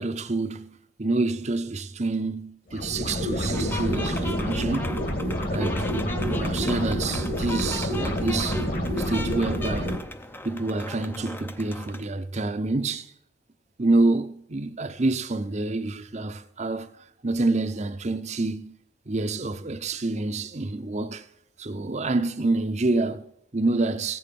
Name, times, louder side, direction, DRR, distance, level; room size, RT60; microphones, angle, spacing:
voice 1, 0.0-4.9 5.5-5.9 6.3-8.7 9.0-10.0 10.4-13.1 13.8-16.9 17.2-18.7 19.1-21.2 21.6-24.2, right 2 dB, 40° right, 0.7 m, -27 dB
sound 1, 2.7-10.0, equal, 55° left, 2.0 m, -28 dB
sound 2, 3.5-12.1, left 2 dB, 10° left, 0.6 m, -37 dB
15.0 x 8.5 x 5.3 m
head